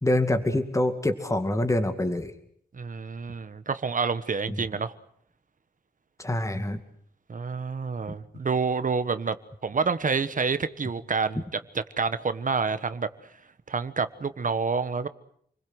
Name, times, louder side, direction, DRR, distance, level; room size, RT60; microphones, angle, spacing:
voice 1, 0.0-2.3 4.5-4.6 6.2-6.8, left 1 dB, 20° left, 7 dB, 2.4 m, -25 dB
voice 2, 2.7-4.9 7.3-9.3 9.6-11.4 12.0-13.1 13.7-15.1, right 5 dB, 55° right, 12 dB, 1.3 m, -28 dB
29.0 x 21.5 x 8.0 m, 0.65 s
wide cardioid pair, 115°, 16 cm